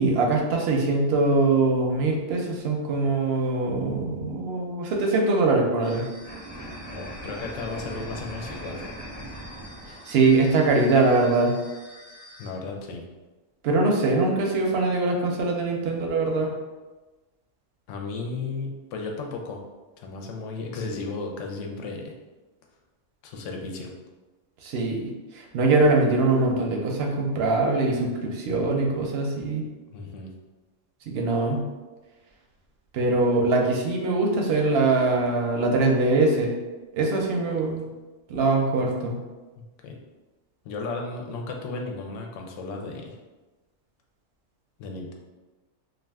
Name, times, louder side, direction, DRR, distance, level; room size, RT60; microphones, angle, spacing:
voice 1, 0.0-6.0 10.1-11.5 13.6-16.5 24.6-25.1 25.3-29.6 31.1-31.6 32.9-36.5 36.9-37.8 38.3-39.1, right 3 dB, 65° right, 0 dB, 0.7 m, -22 dB
sound 1, 5.8-12.5, equal, 10° left, 0.8 m, -40 dB
voice 2, 6.8-8.8 12.4-13.0 17.9-19.6 20.0-22.1 23.2-23.9 29.9-30.3 39.6-40.0 40.6-43.2 44.8-45.1, left 3 dB, 75° left, 1 dB, 0.9 m, -34 dB
2.4 x 2.4 x 3.4 m, 1.2 s
omnidirectional pair, 1.3 m